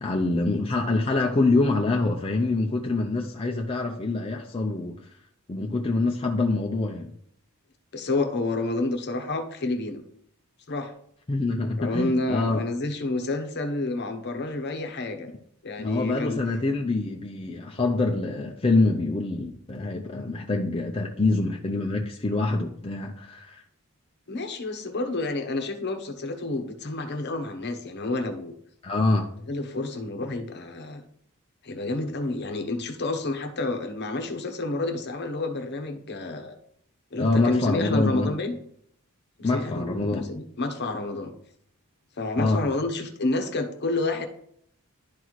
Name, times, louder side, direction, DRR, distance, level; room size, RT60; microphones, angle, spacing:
voice 1, 0.0-4.9 5.5-7.1 11.3-12.6 15.8-23.6 28.8-29.3 37.2-38.3 39.4-40.2 42.4-42.6, left 2 dB, 25° left, 0 dB, 0.5 m, -25 dB
voice 2, 7.9-10.0 10.7-10.9 11.8-15.3 15.6-16.4 24.3-28.6 29.5-31.0 31.6-36.6 37.1-38.5 39.4-41.3 42.2-44.3, left 2 dB, 50° left, 7 dB, 0.9 m, -29 dB
11.5 x 4.1 x 3.1 m, 0.67 s
head